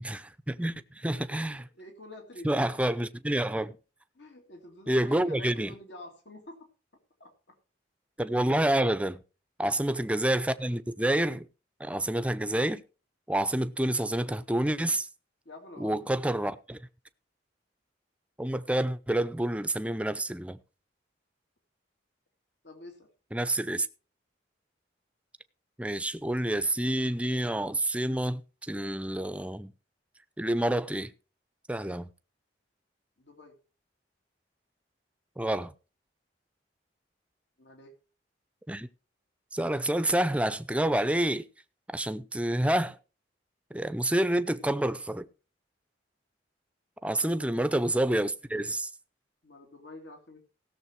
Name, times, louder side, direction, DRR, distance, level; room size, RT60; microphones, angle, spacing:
voice 1, 0.0-1.7 2.4-3.8 4.9-5.7 8.2-9.2 9.6-11.5 11.8-12.8 13.3-15.1 15.8-16.8 18.4-20.6 23.3-23.9 25.8-29.7 30.4-31.1 31.7-32.1 35.4-35.7 38.7-38.9 39.5-41.5 41.9-43.0 43.7-45.3 47.0-48.9, right 1 dB, 5° right, 0.6 m, -28 dB
voice 2, 1.7-2.7 4.1-6.7 7.2-7.6 9.6-9.7 10.0-10.1 15.4-16.0 22.6-23.1 33.2-33.6 37.6-37.9 47.3-47.5 49.4-50.5, left 1 dB, 75° left, 2.5 m, -48 dB
16.5 x 6.9 x 4.6 m
head